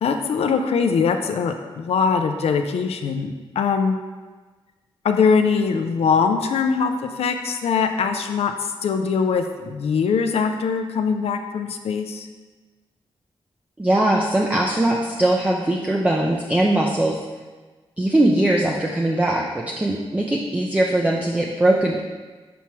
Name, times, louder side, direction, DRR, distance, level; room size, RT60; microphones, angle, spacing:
voice 1, 0.0-4.0 5.0-12.3, left 5 dB, 90° left, 6 dB, 0.4 m, -22 dB
voice 2, 13.8-17.2 18.0-22.0, right 1 dB, 15° right, -1 dB, 0.5 m, -20 dB
7.0 x 4.5 x 3.1 m, 1.3 s
wide cardioid pair, 110°, 10 cm